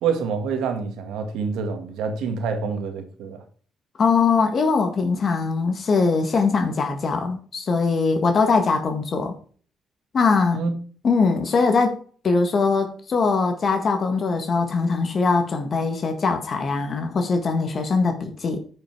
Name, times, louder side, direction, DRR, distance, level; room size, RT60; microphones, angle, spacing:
voice 1, 0.0-3.4 10.5-10.7, right 5 dB, 90° right, 1.9 m, -26 dB
voice 2, 4.0-9.4 10.1-10.6 11.0-12.0 12.2-18.6, left 4 dB, 50° left, 1.6 m, -21 dB
9.8 x 5.7 x 4.6 m
cardioid pair, 90°, 0 cm